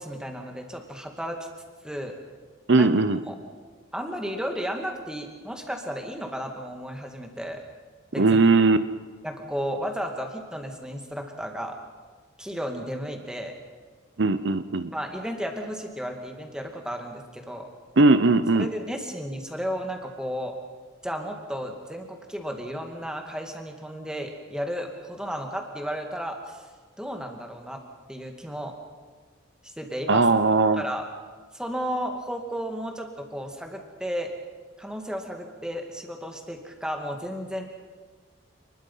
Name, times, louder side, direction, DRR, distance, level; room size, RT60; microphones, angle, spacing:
voice 1, 0.0-1.4 1.8-2.1 2.8-2.9 3.3-3.4 3.9-7.6 8.1-8.4 9.2-11.8 12.4-13.5 14.9-17.7 18.5-20.6 21.0-26.6 27.0-27.8 28.1-28.8 29.6-30.2 30.7-31.1 31.5-34.3 34.8-37.6, equal, 5° right, 3 dB, 2.3 m, -33 dB
voice 2, 2.7-3.2 8.2-8.8 14.2-14.9 18.0-18.7 30.1-30.8, right 3 dB, 60° right, 12 dB, 0.8 m, -19 dB
28.5 x 21.0 x 5.7 m, 1.5 s
head